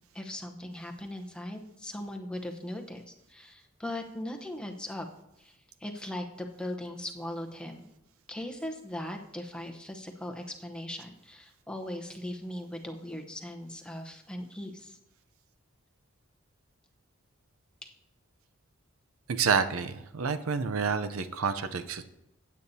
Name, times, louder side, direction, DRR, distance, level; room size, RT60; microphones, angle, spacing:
voice 1, 0.1-5.1 5.4-7.8 8.3-15.0 17.8-17.9, left 1 dB, 5° left, 3 dB, 0.8 m, -39 dB
voice 2, 19.3-22.0, right 5 dB, 85° right, 10 dB, 0.6 m, -29 dB
16.5 x 8.4 x 2.7 m, 0.87 s
head